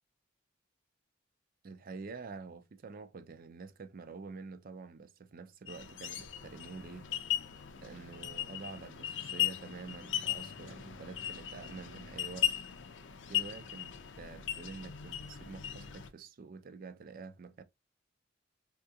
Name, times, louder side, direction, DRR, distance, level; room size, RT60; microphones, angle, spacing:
voice 1, 1.6-7.1 7.8-12.5 13.3-17.6, right 4 dB, 45° right, 0.4 m, -47 dB
sound 1, 5.7-16.1, left 11 dB, 65° left, 0.5 m, -38 dB
3.5 x 2.4 x 2.7 m
head